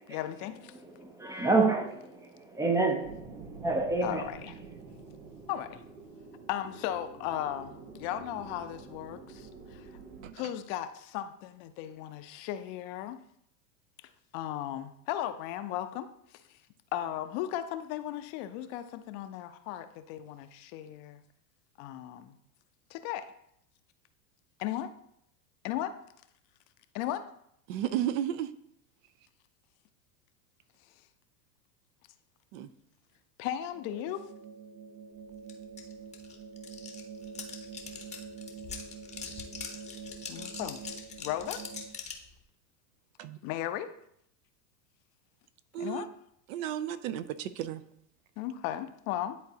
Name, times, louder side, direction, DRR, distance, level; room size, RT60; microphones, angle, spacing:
voice 1, 0.1-0.7 4.0-4.5 5.5-5.8 6.5-9.9 10.3-13.2 14.3-16.1 16.9-21.2 21.8-22.4 22.9-23.3 24.6-24.9 25.6-25.9 26.9-27.2 33.4-34.3 40.3-40.8 41.2-41.6 43.4-43.9 45.8-46.1 48.4-49.4, left 12 dB, 45° left, 0.6 m, -36 dB
voice 2, 0.7-4.3, right 3 dB, 10° right, 0.4 m, -29 dB
sound 1, 3.0-10.3, right 4 dB, 80° right, 1.4 m, -48 dB
voice 3, 27.7-28.5 32.5-32.7 43.2-43.4 45.7-46.0 46.5-47.8, right 11 dB, 55° right, 0.6 m, -33 dB
sound 2, 33.7-41.9, right 5 dB, 25° right, 0.9 m, -46 dB
sound 3, 35.5-35.6 35.8-42.3, left 5 dB, 15° left, 0.7 m, -43 dB
10.5 x 3.8 x 2.8 m
hypercardioid pair, 115°, 47 cm